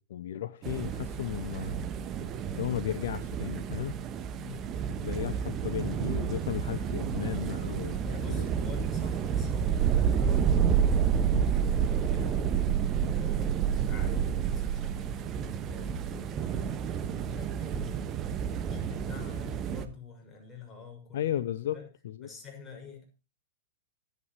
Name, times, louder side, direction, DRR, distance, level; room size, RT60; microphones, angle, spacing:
voice 1, 0.0-1.8 2.6-4.0 5.0-8.0 8.3-8.5 11.3-11.5 21.1-21.8 22.0-22.3, left 11 dB, 60° left, 15 dB, 0.7 m, -34 dB
sound 1, 0.6-19.9, right 8 dB, 30° right, 1.4 m, -30 dB
voice 2, 4.4-4.7 8.0-16.8 17.1-21.3 21.7-21.9 22.2-23.1, left 6 dB, 15° left, 0 dB, 6.4 m, -48 dB
26.0 x 9.0 x 3.1 m, 0.31 s
figure-of-eight pair, 100°, 0 cm